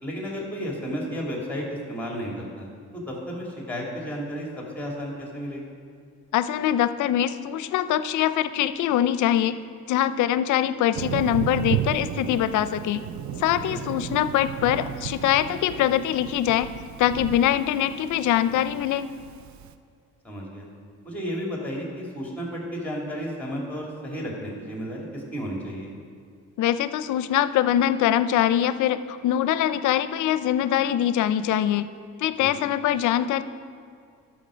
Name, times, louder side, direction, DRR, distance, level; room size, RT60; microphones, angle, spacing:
voice 1, 0.0-2.7 2.9-5.7 13.5-13.8 20.2-20.7 21.0-25.9 32.4-32.5, equal, 5° left, -2 dB, 2.6 m, -33 dB
voice 2, 6.3-9.6 9.9-13.0 13.4-16.7 17.0-19.1 26.6-31.9 32.2-33.4, left 11 dB, 75° left, 13 dB, 0.5 m, -23 dB
Thunder, 10.9-19.7, right 11 dB, 70° right, 0.5 m, -34 dB
12.0 x 6.2 x 5.1 m, 2.2 s
cardioid pair, 90°, 30 cm